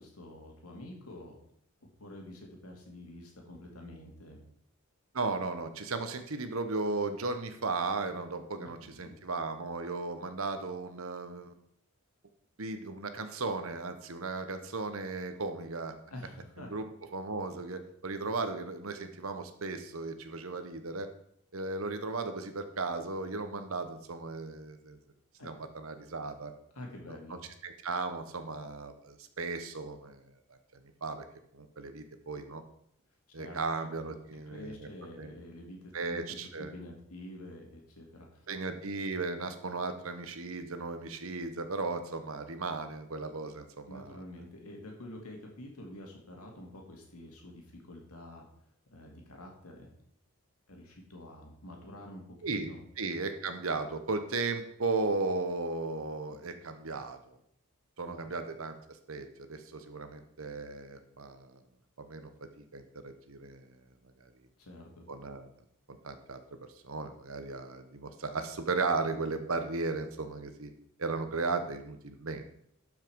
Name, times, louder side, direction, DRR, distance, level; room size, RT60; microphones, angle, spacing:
voice 1, 0.0-1.4 2.0-4.5 8.6-9.2 16.1-16.7 25.4-25.5 26.7-27.4 33.4-34.0 34.5-38.5 43.9-48.5 48.9-49.9 50.7-52.8 58.0-58.2 64.6-65.1, left 1 dB, 85° left, 1 dB, 2.5 m, -48 dB
voice 2, 5.1-11.5 12.6-16.0 16.6-16.9 17.1-21.1 21.5-25.0 25.4-26.5 27.6-30.2 30.5-31.3 31.5-32.6 33.3-34.9 35.2-35.3 35.9-36.7 38.5-44.2 52.4-52.7 53.0-57.2 58.0-61.6 62.0-62.3 62.6-63.7 64.2-64.3 65.1-65.5 65.9-66.4 66.8-70.7 71.0-72.5, right 3 dB, 70° right, 8 dB, 1.1 m, -36 dB
12.0 x 5.7 x 4.7 m, 0.71 s
head